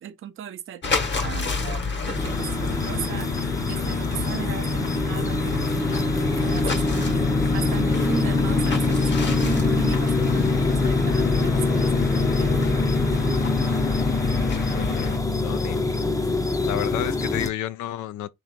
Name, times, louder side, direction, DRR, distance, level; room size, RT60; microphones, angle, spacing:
voice 1, 0.0-7.1 7.5-13.4, right 10 dB, 45° right, 0.5 m, -37 dB
sound 1, 0.8-15.2, left 4 dB, 40° left, 0.9 m, -29 dB
sound 2, 2.1-17.5, left 3 dB, 10° left, 0.6 m, -24 dB
voice 2, 14.5-15.8 16.6-18.3, left 13 dB, 75° left, 0.5 m, -31 dB
3.2 x 3.0 x 3.9 m
cardioid pair, 90°, 30 cm